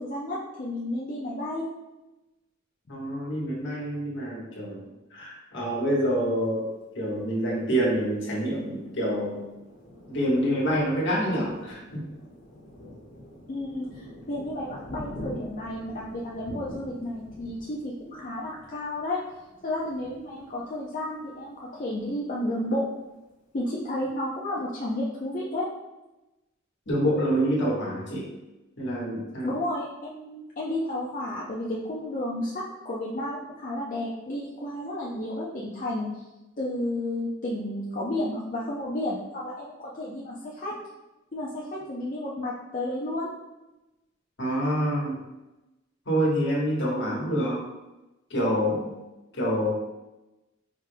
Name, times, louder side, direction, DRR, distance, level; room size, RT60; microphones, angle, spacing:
voice 1, 0.0-1.6 13.5-19.2 19.6-22.9 23.5-25.7 29.4-36.2 36.6-40.8 41.3-43.3, left 1 dB, 40° left, -4 dB, 0.5 m, -32 dB
voice 2, 2.9-4.8 5.1-6.7 6.9-9.4 10.1-12.0 26.9-28.3 28.8-29.6 44.4-45.2 46.1-47.6 48.3-49.0 49.3-49.7, equal, 60° left, -5 dB, 1.3 m, -27 dB
Thunder, 7.2-21.5 22.0-22.1 22.4-23.0, equal, 85° left, 1.2 m, -45 dB
4.8 x 3.3 x 2.2 m, 1.0 s
head